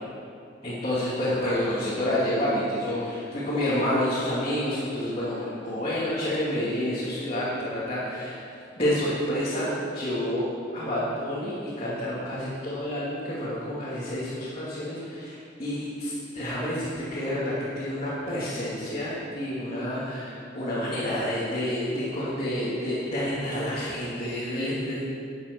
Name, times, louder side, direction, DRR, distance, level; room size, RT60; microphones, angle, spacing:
voice 1, 0.6-8.4 8.8-10.5 10.7-25.0, left 1 dB, 35° left, -10 dB, 2.9 m, -29 dB
12.5 x 9.8 x 6.3 m, 2.5 s
head